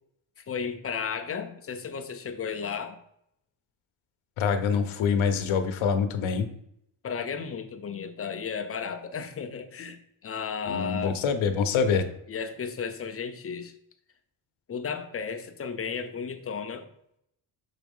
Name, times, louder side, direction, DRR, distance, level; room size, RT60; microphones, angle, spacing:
voice 1, 0.5-3.0 7.0-11.2 12.3-13.7 14.7-16.9, left 6 dB, 30° left, 7 dB, 0.6 m, -34 dB
voice 2, 4.4-6.5 10.7-12.1, left 6 dB, 75° left, 9 dB, 0.9 m, -25 dB
5.9 x 4.2 x 5.3 m, 0.74 s
cardioid pair, 155°, 48 cm